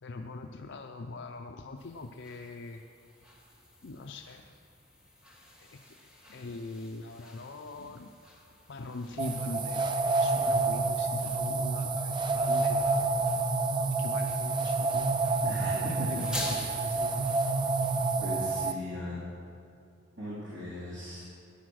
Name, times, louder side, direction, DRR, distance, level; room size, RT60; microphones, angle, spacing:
voice 1, 0.0-2.8 3.8-4.4 5.7-5.9 6.3-8.1 8.7-13.1 14.0-15.2 15.6-17.4, left 3 dB, 60° left, 4 dB, 0.5 m, -42 dB
sound 1, 1.8-18.2, left 1 dB, 5° right, 1.7 m, -48 dB
sound 2, 9.2-18.7, right 3 dB, 25° right, 0.5 m, -28 dB
voice 2, 15.4-16.2 18.2-19.2 20.2-21.2, left 1 dB, 60° right, -8 dB, 3.6 m, -37 dB
15.5 x 10.0 x 6.3 m, 2.5 s
head